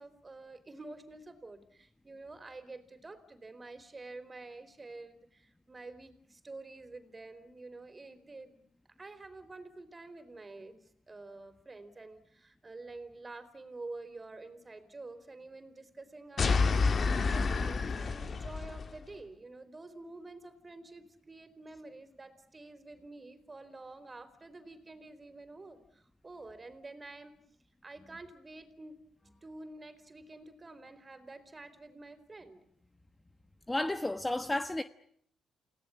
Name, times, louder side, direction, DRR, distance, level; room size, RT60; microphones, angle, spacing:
voice 1, 0.0-8.6 9.0-27.4 27.8-29.0 29.4-32.6, right 2 dB, 25° right, 4.2 m, -49 dB
sound 1, 16.4-18.9, left 4 dB, 45° left, 1.6 m, -29 dB
voice 2, 33.7-34.8, left 1 dB, 10° left, 1.2 m, -32 dB
29.5 x 18.0 x 9.9 m
cardioid pair, 90°, 0 cm